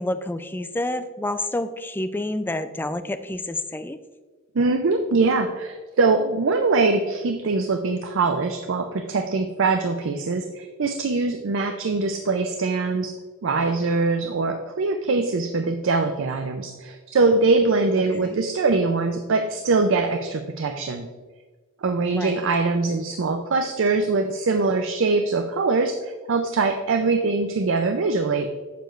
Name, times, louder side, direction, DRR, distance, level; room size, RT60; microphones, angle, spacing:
voice 1, 0.0-4.0 18.2-18.4 22.1-22.4, left 1 dB, 10° left, 9 dB, 0.3 m, -29 dB
voice 2, 4.5-13.1 13.4-21.1 21.8-28.7, right 3 dB, 60° right, 6 dB, 0.5 m, -23 dB
7.8 x 6.8 x 3.1 m, 1.4 s
head